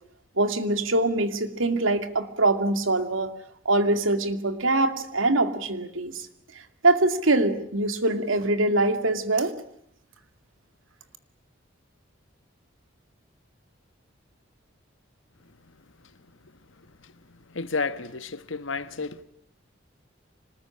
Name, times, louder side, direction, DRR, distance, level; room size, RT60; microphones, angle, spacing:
voice 1, 0.4-3.3 3.7-6.3 6.8-9.5, right 2 dB, 85° right, 2.3 m, -23 dB
voice 2, 17.5-19.2, left 4 dB, 75° left, 1.3 m, -31 dB
25.5 x 20.0 x 9.8 m
head